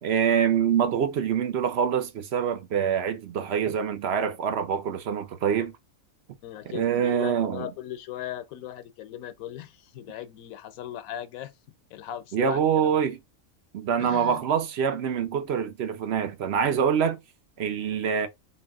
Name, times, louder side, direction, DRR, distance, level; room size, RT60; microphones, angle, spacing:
voice 1, 0.0-5.7 6.7-7.7 12.3-13.2 13.7-17.2 17.6-18.3, right 7 dB, 60° right, 0.8 m, -25 dB
voice 2, 6.4-11.5 11.9-13.0 14.0-14.4, left 11 dB, 90° left, 1.0 m, -38 dB
3.9 x 2.4 x 3.5 m
omnidirectional pair, 1.4 m